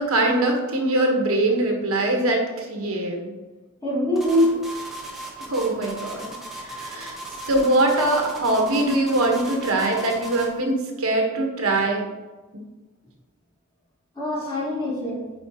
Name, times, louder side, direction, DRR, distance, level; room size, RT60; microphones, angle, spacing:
voice 1, 0.0-3.3 5.5-7.2 7.5-12.1 12.5-12.6, right 2 dB, 85° right, 2 dB, 1.2 m, -22 dB
voice 2, 3.8-4.6 6.9-7.1 14.2-15.2, left 1 dB, 20° left, -5 dB, 1.8 m, -23 dB
sound 1, 4.2-10.6, right 1 dB, ahead, 1.2 m, -37 dB
8.6 x 4.2 x 2.9 m, 1.2 s
head